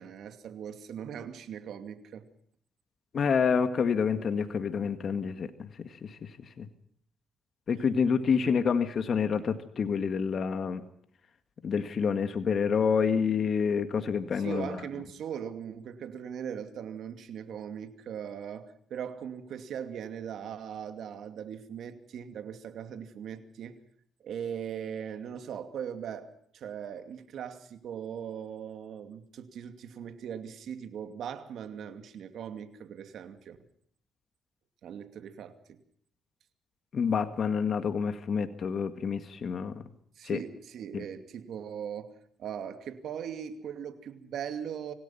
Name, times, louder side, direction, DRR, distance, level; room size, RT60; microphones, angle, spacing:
voice 1, 0.0-2.2 14.3-23.8 24.2-33.6 34.8-35.8 40.2-42.1 42.4-44.9, right 8 dB, 70° right, 9 dB, 2.5 m, -39 dB
voice 2, 3.1-5.7 6.0-6.3 6.6-6.7 7.7-10.8 11.6-14.8 36.9-39.8 40.2-40.4 40.9-41.0, left 6 dB, 50° left, 9 dB, 1.9 m, -28 dB
26.5 x 17.5 x 5.8 m, 0.65 s
cardioid pair, 90°, 0 cm